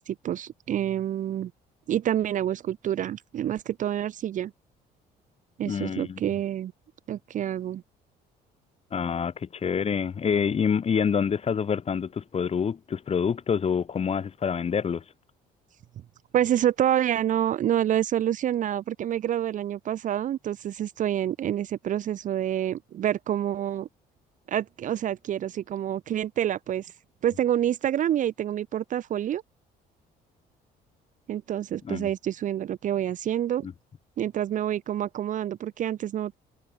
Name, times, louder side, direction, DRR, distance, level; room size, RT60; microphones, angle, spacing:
voice 1, 0.0-1.5 1.9-4.5 5.6-6.7 7.1-7.8 16.3-23.9 24.5-26.9 27.2-29.4 31.3-33.7 34.2-36.4, right 11 dB, 50° right, 0.7 m, -27 dB
voice 2, 5.6-6.2 8.9-15.0 31.8-32.1 33.6-33.7, left 7 dB, 35° left, 3.3 m, -27 dB
cardioid pair, 110°, 17 cm